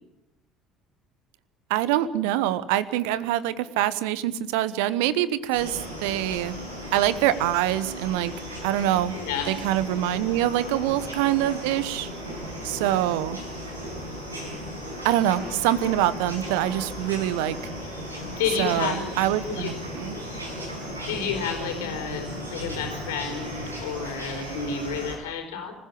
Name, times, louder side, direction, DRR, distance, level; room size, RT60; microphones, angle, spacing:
voice 1, 1.7-6.6 6.9-8.3 8.6-9.2 9.5-12.1 12.6-13.4 15.0-17.6 18.6-20.2, right 13 dB, 65° right, 16 dB, 1.1 m, -25 dB
sound 1, 5.5-25.1, equal, 90° right, 5.3 m, -36 dB
voice 2, 9.1-9.6 10.6-10.7 18.4-19.1 19.5-19.7 21.1-25.7, left 6 dB, 70° left, 4 dB, 5.0 m, -30 dB
26.0 x 15.5 x 8.6 m, 0.93 s
figure-of-eight pair, 55°, 0 cm